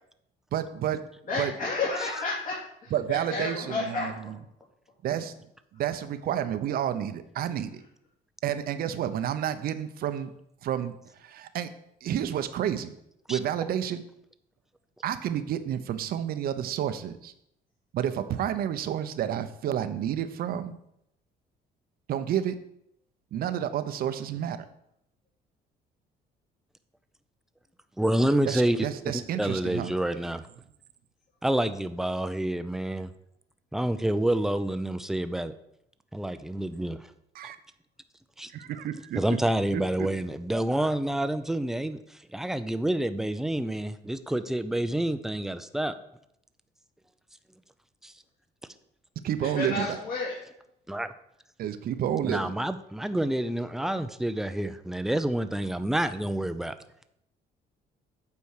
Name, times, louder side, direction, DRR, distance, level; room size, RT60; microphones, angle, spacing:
voice 1, 0.5-1.0 1.4-1.5 2.9-4.4 5.0-5.3 5.7-7.8 8.4-10.3 10.6-10.9 11.2-11.7 12.0-12.9 13.3-14.0 15.0-17.3 17.9-20.8 22.1-22.5 23.3-24.6 28.5-29.9 37.3-37.6 38.5-39.2 39.7-40.1 49.2-50.0 51.6-52.5, right 10 dB, 60° right, 11 dB, 0.8 m, -30 dB
voice 2, 1.3-2.5 2.8-4.1 49.6-50.3, left 3 dB, 50° left, -6 dB, 2.9 m, -31 dB
voice 3, 28.0-28.9 29.1-30.5 31.4-33.1 33.7-35.5 36.1-37.0 38.4-38.5 39.1-45.9 48.0-48.1 50.9-51.1 52.3-56.7, right 1 dB, ahead, 11 dB, 0.5 m, -28 dB
8.5 x 4.5 x 6.5 m, 0.76 s
cardioid pair, 110°, 17 cm